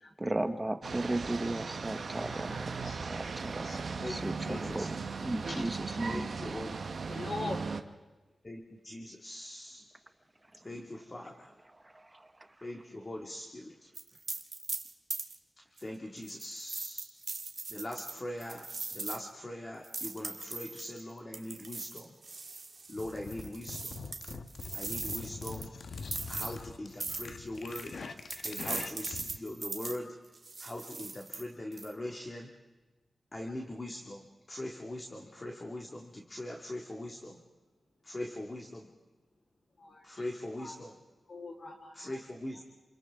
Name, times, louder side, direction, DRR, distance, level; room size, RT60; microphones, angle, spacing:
voice 1, 0.2-5.0 5.2-6.3 11.8-12.5, right 2 dB, 20° right, 8 dB, 1.0 m, -36 dB
sound 1, 0.8-7.8, right 4 dB, 65° right, 1.0 m, -38 dB
voice 2, 2.0-4.7 5.4-6.0 7.1-8.0 39.8-40.3 40.6-40.8 41.3-42.1, left 2 dB, 55° left, 1 dB, 3.8 m, -44 dB
voice 3, 4.0-4.9 6.1-6.8 7.1-7.2 8.4-9.8 10.6-11.5 12.6-13.9 15.8-17.1 17.7-22.1 22.9-24.0 24.7-25.7 26.3-28.0 28.4-30.2 30.6-32.5 33.3-37.4 38.0-38.9 40.0-41.0 41.9-42.6, left 1 dB, 30° left, 0 dB, 1.9 m, -41 dB
sound 2, 13.9-15.4 15.8-15.9 16.2-19.2 19.8-21.0 21.3-25.6 26.0-26.6 27.0-27.3 27.6-30.0 30.3-31.4 31.7-31.9, right 3 dB, 45° right, 1.6 m, -40 dB
sound 3, 23.0-29.4, left 4 dB, 75° left, 1.1 m, -44 dB
29.0 x 27.5 x 3.6 m, 1.2 s
wide cardioid pair, 105°, 0 cm